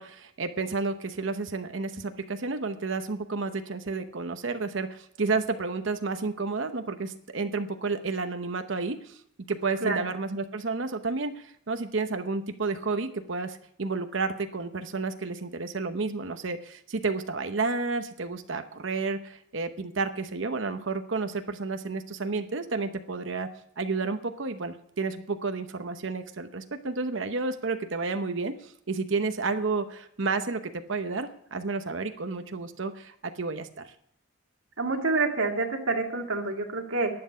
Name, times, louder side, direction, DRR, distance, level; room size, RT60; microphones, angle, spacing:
voice 1, 0.0-9.2 9.5-23.5 23.8-33.9, right 3 dB, 65° right, 8 dB, 0.9 m, -31 dB
voice 2, 34.8-37.1, right 3 dB, 80° right, 2 dB, 2.2 m, -27 dB
11.5 x 7.9 x 9.6 m, 0.68 s
head